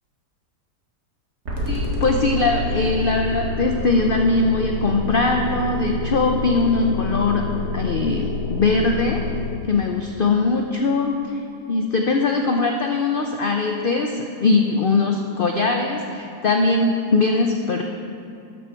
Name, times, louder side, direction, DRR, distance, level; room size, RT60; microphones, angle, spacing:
sound 1, 1.5-9.5, left 1 dB, 85° right, 2.2 m, -27 dB
voice 1, 1.7-7.4 7.7-9.2 9.6-17.8, left 3 dB, 75° left, 3 dB, 0.5 m, -21 dB
12.5 x 7.4 x 4.5 m, 2.5 s
omnidirectional pair, 1.7 m